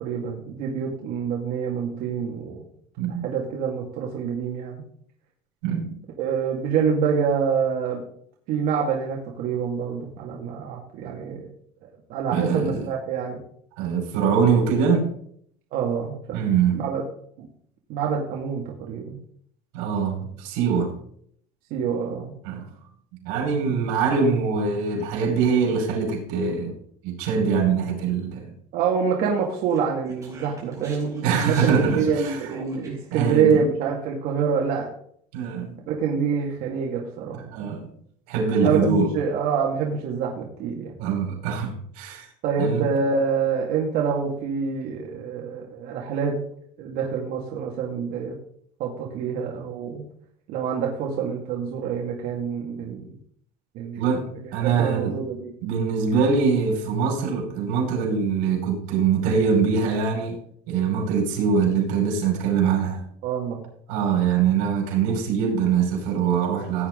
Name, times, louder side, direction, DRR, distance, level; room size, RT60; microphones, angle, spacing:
voice 1, 0.0-2.6 3.2-4.8 6.2-8.0 8.5-11.5 12.1-13.4 15.7-16.4 16.7-17.0 17.4-17.5 17.9-19.2 21.7-22.3 28.7-34.9 35.9-37.4 37.7-37.8 38.6-40.9 42.4-46.4 46.8-48.4 48.8-50.0 50.5-53.2 53.7-54.0 54.8-55.5 63.2-63.6, right 6 dB, 60° right, 2.2 m, -26 dB
voice 2, 5.6-5.9 12.3-12.9 13.8-15.1 16.3-16.8 19.7-21.0 22.4-22.7 23.2-26.7 27.0-28.5 31.2-32.4 33.1-33.6 35.3-35.8 37.5-37.8 38.3-39.1 41.0-42.3 42.6-42.9 54.0-55.1 55.6-60.4 60.7-63.0 63.9-66.9, right 6 dB, 90° right, 5.2 m, -23 dB
Speech, 29.7-33.1, right 3 dB, 20° right, 5.7 m, -44 dB
16.5 x 9.3 x 3.9 m
cardioid pair, 160°, 17 cm